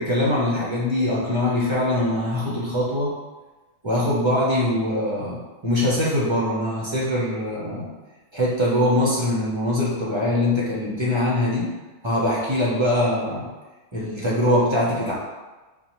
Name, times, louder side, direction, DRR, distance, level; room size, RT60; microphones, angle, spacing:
voice 1, 0.0-3.1 3.8-5.4 5.6-7.9 8.3-11.7 12.0-13.5 13.9-15.1, left 1 dB, 30° right, -6 dB, 0.6 m, -22 dB
5.3 x 2.2 x 3.0 m, 1.2 s
omnidirectional pair, 1.4 m